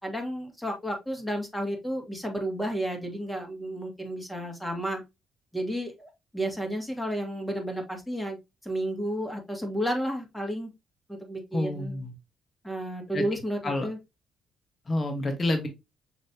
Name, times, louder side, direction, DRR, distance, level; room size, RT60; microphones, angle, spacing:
voice 1, 0.0-5.0 5.5-10.7 11.1-12.0 12.6-14.0, equal, 5° left, 3 dB, 1.7 m, -32 dB
voice 2, 11.5-12.1 13.1-13.2 13.6-13.9 14.9-15.7, left 1 dB, 30° left, 4 dB, 1.3 m, -28 dB
6.2 x 3.1 x 2.8 m, 0.22 s
cardioid pair, 90°, 0 cm